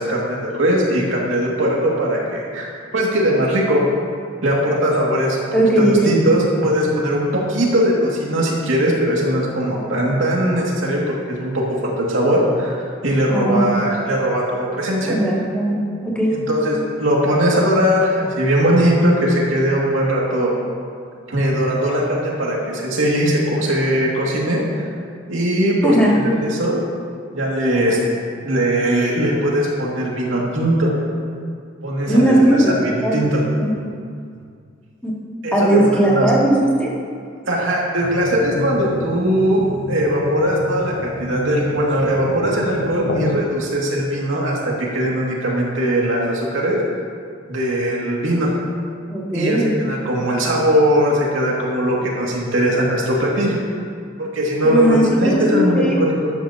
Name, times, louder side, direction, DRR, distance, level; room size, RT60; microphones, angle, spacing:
voice 1, 0.0-2.7 2.9-3.8 4.4-5.5 5.8-11.0 11.3-11.6 12.0-12.8 13.0-15.2 16.3-20.5 21.3-24.6 25.3-26.8 27.3-28.0 28.4-30.9 31.8-33.4 35.4-36.3 37.5-39.6 39.9-46.8 47.5-48.5 49.3-53.6 54.2-56.3, equal, 90° right, -4 dB, 2.4 m, -19 dB
voice 2, 5.5-6.2 13.3-13.7 15.0-15.8 16.0-16.3 25.8-26.1 32.1-33.2 33.6-33.7 35.0-35.1 35.5-36.9 49.1-49.7 54.6-55.0 55.5-56.0, right 1 dB, 5° left, -7 dB, 2.4 m, -17 dB
sound 1, 38.0-43.4, left 1 dB, 75° left, 0.8 m, -28 dB
13.5 x 12.0 x 2.9 m, 2.2 s
head